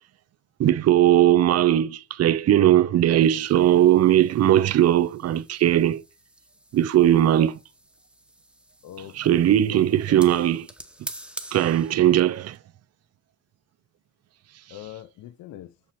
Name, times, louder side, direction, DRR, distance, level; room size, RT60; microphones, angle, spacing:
voice 1, 0.6-6.0 6.7-7.6 9.1-10.7 11.5-12.6, right 12 dB, 55° right, 0.6 m, -19 dB
voice 2, 1.3-1.6 8.8-10.3 14.7-15.7, left 12 dB, 80° left, 0.7 m, -43 dB
sound 1, 3.2-12.6, right 1 dB, 5° right, 0.9 m, -46 dB
7.0 x 4.4 x 5.8 m
cardioid pair, 90°, 30 cm